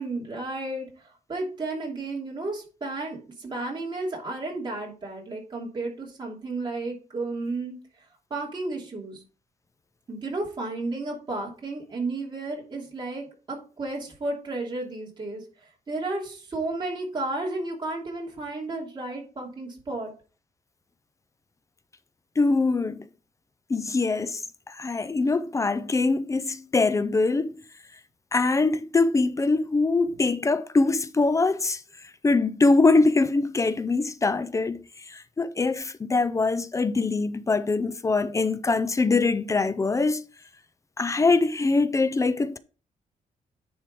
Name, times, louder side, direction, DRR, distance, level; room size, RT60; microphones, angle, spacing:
voice 1, 0.0-7.7 8.3-9.2 10.1-15.4 15.9-20.1, right 2 dB, 35° right, 2.9 m, -33 dB
voice 2, 22.4-23.0 23.7-27.5 28.3-31.8 32.2-34.8 35.1-40.2 41.0-42.6, left 3 dB, 20° left, 0.4 m, -23 dB
9.9 x 3.6 x 4.7 m
wide cardioid pair, 135°, 14 cm